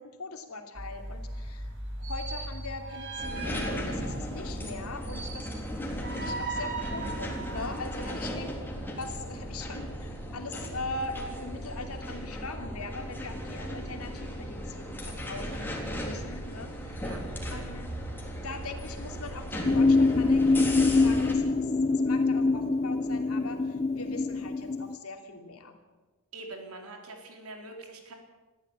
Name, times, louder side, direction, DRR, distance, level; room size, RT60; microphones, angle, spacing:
voice 1, 0.0-1.7 2.0-17.0 17.5-17.9 18.2-25.7, left 3 dB, 85° left, 4 dB, 2.9 m, -41 dB
sound 1, 0.7-8.5, right 2 dB, 55° right, 4.6 m, -38 dB
sound 2, 3.2-21.3, equal, 10° left, 3.4 m, -36 dB
sound 3, 19.7-25.0, left 3 dB, 30° left, 0.6 m, -24 dB
voice 2, 26.3-28.1, right 2 dB, 85° right, 3 dB, 4.2 m, -43 dB
20.5 x 14.5 x 8.9 m, 1.2 s
head